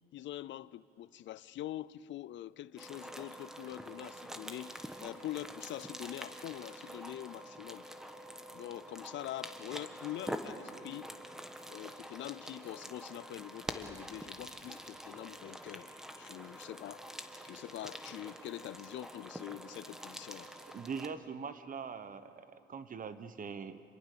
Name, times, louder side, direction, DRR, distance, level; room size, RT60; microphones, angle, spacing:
voice 1, 0.1-7.9 8.5-11.1 11.7-15.9 16.2-17.1 17.4-20.5, left 13 dB, 70° left, 0.5 m, -44 dB
sound 1, 2.8-21.1, equal, ahead, 1.5 m, -46 dB
voice 2, 20.7-23.8, right 6 dB, 45° right, 1.1 m, -42 dB
27.0 x 22.0 x 6.8 m
cardioid pair, 90°, 20 cm